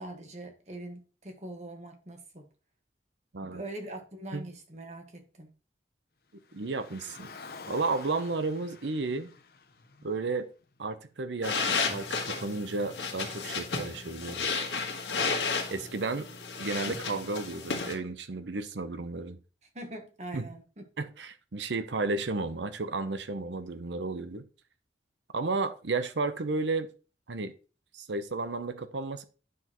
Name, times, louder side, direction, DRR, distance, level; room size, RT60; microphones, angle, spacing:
voice 1, 0.0-2.5 3.4-5.5 19.7-20.8, right 1 dB, 40° right, 1.4 m, -42 dB
Car, 6.4-10.8, left 4 dB, 55° left, 0.8 m, -49 dB
voice 2, 6.5-7.3 7.7-9.3 10.0-10.5 10.8-14.6 15.7-16.3 16.6-19.4 20.3-20.5 21.0-24.4 25.3-26.9 27.3-27.5 27.9-29.2, right 3 dB, 90° right, 0.8 m, -33 dB
sound 1, 11.4-17.9, left 4 dB, 90° left, 1.6 m, -33 dB
9.4 x 6.1 x 3.0 m
head